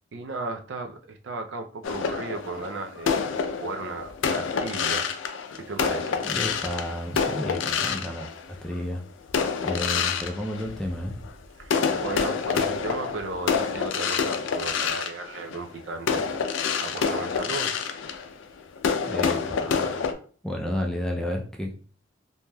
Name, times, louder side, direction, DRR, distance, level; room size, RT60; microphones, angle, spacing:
voice 1, 0.1-3.3 3.6-5.1 5.7-6.2 11.6-16.2 16.5-17.7, right 3 dB, 75° right, 5 dB, 0.4 m, -35 dB
sound 1, 1.8-8.8 9.3-11.3 11.6-20.1, left 6 dB, 80° left, 0.4 m, -27 dB
voice 2, 6.2-8.3 8.6-9.0 9.6-11.2 19.0-20.1 20.4-21.7, left 1 dB, 5° left, 0 dB, 0.3 m, -31 dB
3.2 x 2.6 x 2.2 m, 0.42 s
head